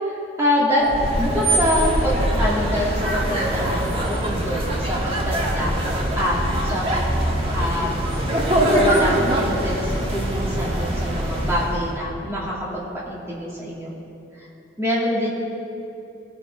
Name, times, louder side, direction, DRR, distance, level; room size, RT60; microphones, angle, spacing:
voice 1, 0.1-5.7 6.2-7.0 7.5-8.0 8.5-13.9 14.4-14.5 14.8-15.3, equal, 15° right, -6 dB, 2.4 m, -25 dB
sound 1, 0.8-11.9, right 1 dB, 30° right, 1.5 m, -23 dB
18.5 x 6.9 x 4.6 m, 2.7 s
head